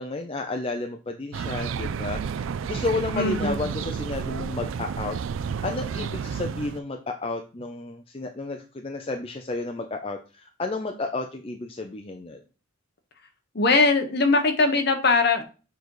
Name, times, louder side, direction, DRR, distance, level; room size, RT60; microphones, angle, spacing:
voice 1, 0.0-5.2 5.6-12.4, left 3 dB, 25° left, 4 dB, 0.5 m, -32 dB
sound 1, 1.3-6.8, right 6 dB, 65° right, 0.3 m, -31 dB
voice 2, 3.2-3.6 13.5-15.4, left 3 dB, 50° left, 6 dB, 1.1 m, -21 dB
6.9 x 4.0 x 4.7 m, 0.34 s
head